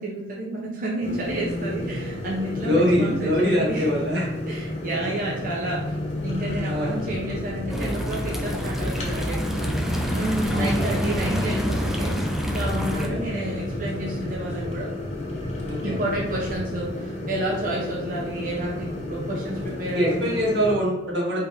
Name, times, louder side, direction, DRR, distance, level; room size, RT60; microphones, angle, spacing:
voice 1, 0.0-4.0 4.5-6.0 6.2-9.8 10.1-12.1 12.5-14.9 15.8-20.4, right 1 dB, 50° right, -4 dB, 0.7 m, -30 dB
sound 1, 1.0-20.7, left 1 dB, 40° left, 0.8 m, -31 dB
voice 2, 2.4-4.3 6.6-6.9 10.5-10.9 12.9-13.2 15.6-15.9 19.9-21.4, equal, 75° right, -4 dB, 1.4 m, -24 dB
sound 2, 7.7-13.1, equal, ahead, 0.3 m, -27 dB
4.3 x 3.3 x 2.6 m, 0.99 s
head